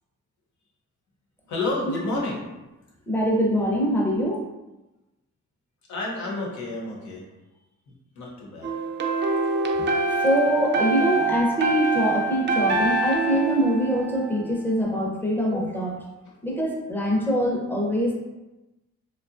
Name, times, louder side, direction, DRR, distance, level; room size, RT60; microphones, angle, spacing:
voice 1, 1.5-2.5 5.9-7.3 8.1-8.7, left 2 dB, 75° left, -2 dB, 0.9 m, -30 dB
voice 2, 3.1-4.4 10.2-16.0 16.4-18.2, equal, 5° left, -2 dB, 0.6 m, -23 dB
sound 1, 8.6-14.6, right 3 dB, 40° right, 0.4 m, -25 dB
2.8 x 2.3 x 2.4 m, 1.0 s
cardioid pair, 90°, 30 cm